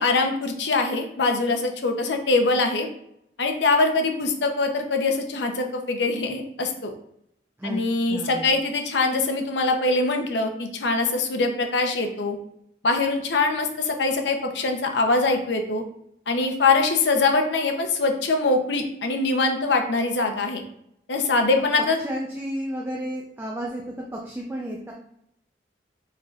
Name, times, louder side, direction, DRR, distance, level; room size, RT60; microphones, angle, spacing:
voice 1, 0.0-2.9 3.4-6.9 7.6-12.4 12.8-15.8 16.3-20.6 21.1-22.0, left 3 dB, 80° left, 4 dB, 0.7 m, -23 dB
voice 2, 8.1-8.6 21.5-21.6 22.0-24.9, equal, 15° right, -1 dB, 0.4 m, -32 dB
4.6 x 4.5 x 2.4 m, 0.75 s
head